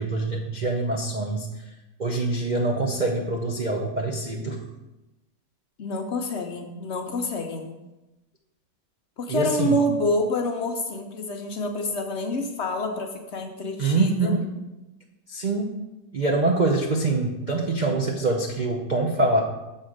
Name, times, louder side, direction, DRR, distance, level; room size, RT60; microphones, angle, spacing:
voice 1, 0.0-1.5 2.0-4.6 9.3-9.8 13.8-14.5 15.3-15.7 16.1-19.4, right 2 dB, 85° right, 1 dB, 0.4 m, -24 dB
voice 2, 5.8-7.7 9.2-14.3, left 1 dB, 60° left, 4 dB, 0.7 m, -27 dB
7.3 x 4.3 x 6.4 m, 1.0 s
omnidirectional pair, 1.9 m